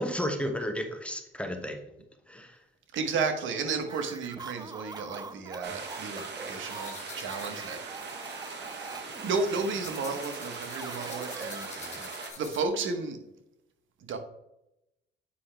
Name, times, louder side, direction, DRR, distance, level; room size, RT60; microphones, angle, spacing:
voice 1, 0.0-1.8 2.3-2.6, equal, 5° left, 5 dB, 1.0 m, -32 dB
voice 2, 2.9-7.8 9.2-13.2 14.0-14.2, right 4 dB, 75° right, 6 dB, 1.1 m, -33 dB
sound 1, 3.8-12.1, right 4 dB, 20° right, 0.5 m, -44 dB
sound 2, 5.6-12.3, right 4 dB, 60° right, 1.5 m, -40 dB
sound 3, 6.6-12.9, left 4 dB, 35° left, 1.8 m, -47 dB
8.1 x 5.4 x 3.3 m, 0.87 s
cardioid pair, 90°, 20 cm